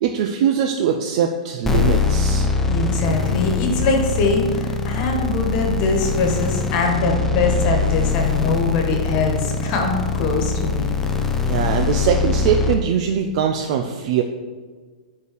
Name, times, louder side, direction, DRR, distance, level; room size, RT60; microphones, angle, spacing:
voice 1, 0.0-2.5 11.4-14.2, right 8 dB, 50° right, 4 dB, 0.5 m, -21 dB
sound 1, 1.6-12.7, left 4 dB, 10° left, 0.6 m, -22 dB
voice 2, 2.7-10.9, left 3 dB, 40° left, 2 dB, 1.6 m, -22 dB
5.5 x 4.8 x 6.2 m, 1.5 s
hypercardioid pair, 145°, 4 cm